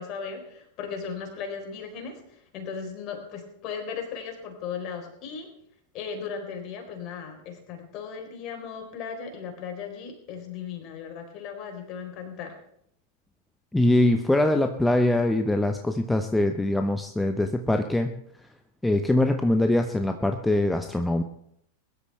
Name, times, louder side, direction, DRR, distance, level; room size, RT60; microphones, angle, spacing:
voice 1, 0.0-5.5 5.9-12.6, left 6 dB, 40° left, 4 dB, 4.1 m, -37 dB
voice 2, 13.7-18.1 18.8-21.2, left 1 dB, 5° left, 6 dB, 0.9 m, -23 dB
21.5 x 12.5 x 3.4 m, 0.71 s
figure-of-eight pair, 90°, 0 cm